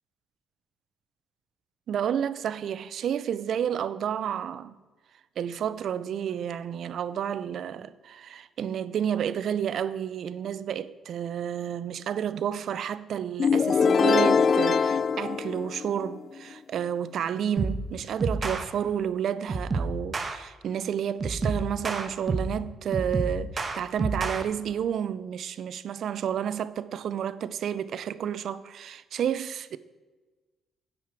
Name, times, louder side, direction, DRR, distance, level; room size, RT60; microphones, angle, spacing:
voice 1, 1.9-4.8 5.4-29.8, right 9 dB, 65° right, 0.6 m, -30 dB
sound 1, 13.4-16.2, left 6 dB, 50° left, 0.4 m, -23 dB
sound 2, 17.6-17.9 18.2-18.6 19.5-20.4 21.2-22.6 22.9-24.4, right 3 dB, 35° right, 1.1 m, -29 dB
9.7 x 8.0 x 6.0 m
cardioid pair, 90°, 0 cm